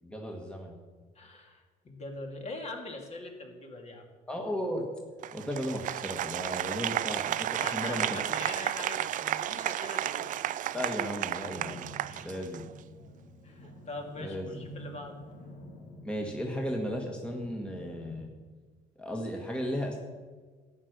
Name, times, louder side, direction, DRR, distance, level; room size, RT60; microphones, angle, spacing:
voice 1, 0.0-0.8 4.3-4.9 5.3-8.2 10.7-11.9 12.2-12.7 14.2-14.7 16.0-18.3 19.0-20.0, equal, 5° left, 1 dB, 1.6 m, -35 dB
voice 2, 1.1-4.1 7.5-10.3 12.1-12.3 13.4-15.2, left 2 dB, 40° left, 2 dB, 2.6 m, -42 dB
Applause, 5.2-12.8, right 12 dB, 50° right, 0.4 m, -33 dB
sound 1, 11.4-18.2, right 1 dB, 80° left, 3.6 m, -49 dB
12.5 x 9.5 x 6.6 m, 1.5 s
cardioid pair, 110°, 17 cm